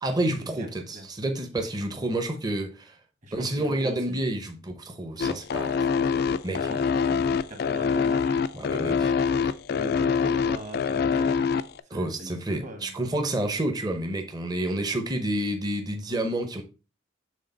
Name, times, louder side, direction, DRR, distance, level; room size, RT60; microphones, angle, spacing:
voice 1, 0.0-2.9 3.3-5.9 6.4-6.8 8.5-9.1 11.9-16.6, right 1 dB, 20° right, 0.7 m, -29 dB
voice 2, 3.2-4.2 6.5-9.1 9.7-11.3 11.9-12.9, equal, 40° right, 1.5 m, -41 dB
sound 1, 5.2-11.8, left 6 dB, 55° left, 0.3 m, -24 dB
6.4 x 3.7 x 3.9 m
head